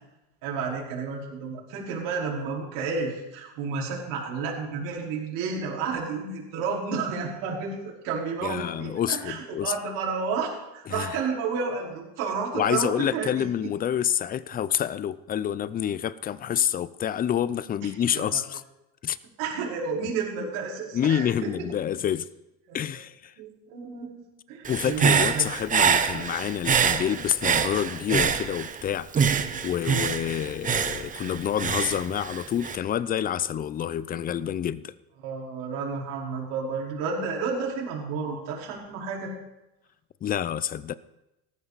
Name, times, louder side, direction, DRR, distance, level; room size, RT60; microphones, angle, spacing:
voice 1, 0.4-13.4 18.1-18.4 19.4-21.6 22.7-22.8 23.4-24.2 24.5-25.5 26.1-26.2 35.2-39.3, right 5 dB, 65° right, 4.8 m, -31 dB
voice 2, 8.4-9.7 10.9-11.2 12.5-18.6 19.0-19.2 20.9-22.3 22.7-23.3 24.7-34.9 40.2-40.9, left 9 dB, 25° left, 0.6 m, -28 dB
Human voice / Breathing, 24.6-28.8 29.1-32.8, right 7 dB, 20° right, 1.0 m, -25 dB
17.5 x 14.5 x 4.2 m
supercardioid pair, 135°, 35 cm